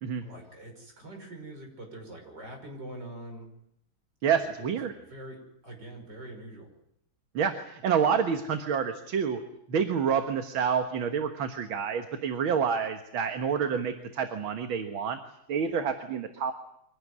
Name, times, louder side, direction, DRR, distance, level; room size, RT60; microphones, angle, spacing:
voice 1, 0.2-3.5 4.3-5.4 5.6-6.7 15.6-15.9, right 1 dB, 50° right, 3 dB, 6.5 m, -44 dB
voice 2, 4.2-4.9 7.3-9.4 9.7-15.2 15.5-16.5, right 7 dB, 70° right, 6 dB, 2.2 m, -28 dB
24.5 x 18.0 x 9.6 m, 0.78 s
omnidirectional pair, 2.3 m